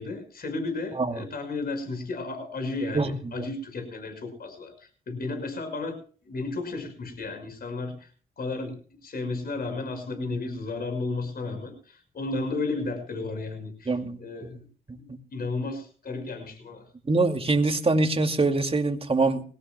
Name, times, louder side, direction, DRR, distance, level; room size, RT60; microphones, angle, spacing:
voice 1, 0.0-4.7 5.1-6.0 6.3-8.1 8.4-14.6 14.9-16.8, left 3 dB, 55° left, 6 dB, 5.7 m, -33 dB
voice 2, 2.9-3.4 13.9-14.2 14.4-14.5 17.1-19.4, right 3 dB, 30° right, 6 dB, 2.4 m, -24 dB
21.0 x 17.0 x 2.3 m, 0.41 s
supercardioid pair, 50°, 19 cm